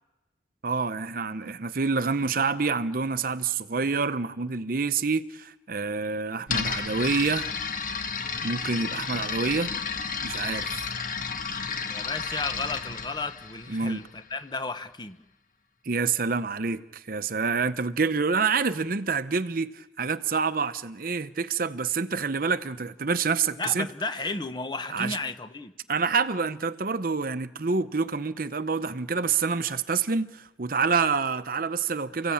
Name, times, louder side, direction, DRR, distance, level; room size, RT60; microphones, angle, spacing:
voice 1, 0.6-7.5 8.4-9.7 10.2-10.8 13.7-14.0 15.8-23.9 24.9-25.2 25.9-32.3, right 4 dB, 50° right, 0.8 m, -27 dB
sound 1, 6.5-14.3, left 5 dB, 50° left, 1.4 m, -32 dB
voice 2, 11.9-15.2 23.6-25.7, left 3 dB, 25° left, 1.0 m, -33 dB
30.0 x 15.5 x 8.6 m
head